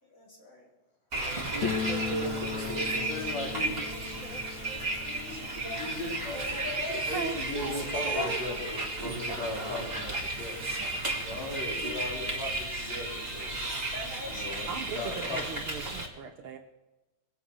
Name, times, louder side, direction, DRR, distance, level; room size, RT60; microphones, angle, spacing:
voice 1, 0.0-0.7 3.8-5.5 6.3-7.1 7.7-7.9 13.8-14.7, left 3 dB, 25° left, -2 dB, 3.7 m, -43 dB
Bus, 1.1-16.1, right 2 dB, 20° right, 2.3 m, -33 dB
sound 1, 1.6-8.3 8.6-8.7 8.9-9.0 9.8-9.9 10.2-11.4, left 7 dB, 80° left, 2.4 m, -39 dB
voice 2, 2.9-3.8 5.8-6.5 7.1-10.6 11.2-13.5 14.2-15.7, left 3 dB, 60° left, -2 dB, 5.0 m, -38 dB
voice 3, 7.1-8.4 14.7-16.6, right 6 dB, 70° right, 3 dB, 1.3 m, -37 dB
22.5 x 8.7 x 6.2 m, 1.1 s
omnidirectional pair, 3.4 m